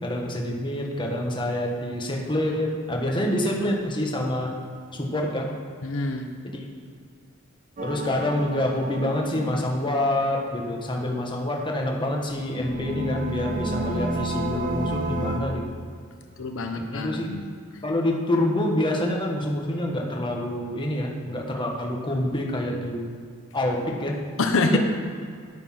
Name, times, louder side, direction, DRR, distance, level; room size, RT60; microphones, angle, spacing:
voice 1, 0.0-4.5 4.9-5.5 6.5-6.6 7.8-15.6 16.9-17.3 17.8-23.1 23.5-24.2 24.7-24.8, left 1 dB, 20° left, 0 dB, 1.5 m, -26 dB
voice 2, 5.8-6.3 16.4-17.5 24.4-24.8, left 2 dB, 65° left, 5 dB, 0.9 m, -25 dB
sound 1, 7.8-10.6 12.4-15.4, equal, 40° right, 1.0 m, -31 dB
9.8 x 9.0 x 5.8 m, 2.2 s
head